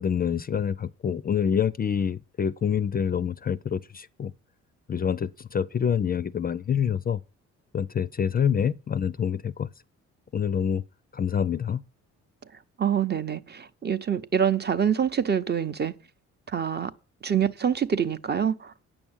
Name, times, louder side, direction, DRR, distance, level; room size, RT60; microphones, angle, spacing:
voice 1, 0.0-4.3 4.9-7.2 7.7-9.7 10.3-10.8 11.1-11.8, left 8 dB, 30° left, 0.4 m, -26 dB
voice 2, 12.8-15.9 16.5-16.9 17.2-18.7, right 8 dB, 35° right, 0.7 m, -25 dB
8.8 x 6.1 x 7.1 m
cardioid pair, 90°, 30 cm